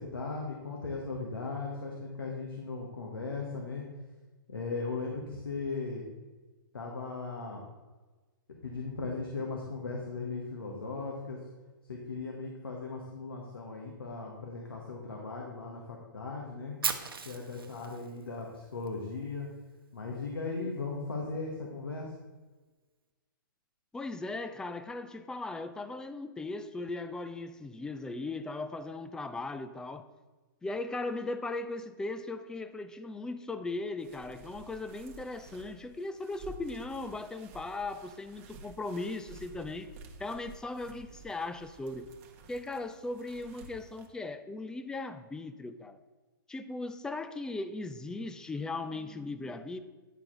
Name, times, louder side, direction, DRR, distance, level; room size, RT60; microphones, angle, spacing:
voice 1, 0.0-3.8 4.5-6.0 6.7-7.6 8.6-11.4 11.9-16.7 17.2-19.5 19.9-22.1, left 3 dB, 85° left, -1 dB, 1.3 m, -37 dB
Fire, 16.8-18.9, right 5 dB, 80° right, 0.8 m, -36 dB
voice 2, 23.9-30.1 30.6-39.9 40.2-42.1 42.5-46.0 46.5-49.8, left 2 dB, 5° left, 10 dB, 0.4 m, -38 dB
sound 1, 34.0-44.1, right 2 dB, 40° right, 1.1 m, -52 dB
9.8 x 4.5 x 3.8 m, 1.3 s
hypercardioid pair, 125°, 12 cm